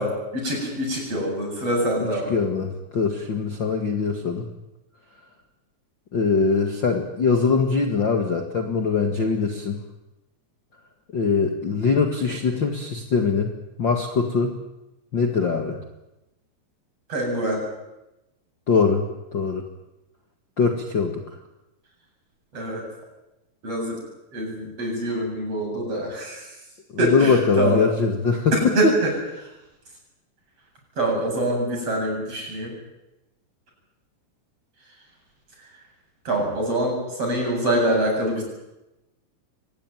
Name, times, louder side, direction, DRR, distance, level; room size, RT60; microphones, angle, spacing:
voice 1, 0.0-2.3 17.1-17.6 22.5-22.8 23.6-24.0 24.3-26.5 27.0-27.8 28.8-29.1 31.0-32.7 36.3-38.4, right 1 dB, 30° right, 1 dB, 8.8 m, -25 dB
voice 2, 2.3-4.5 6.1-9.8 11.1-14.5 15.1-15.8 18.7-19.6 20.6-21.2 27.0-28.9, left 5 dB, 60° left, 4 dB, 1.2 m, -22 dB
24.0 x 19.5 x 9.2 m, 0.95 s
omnidirectional pair, 5.2 m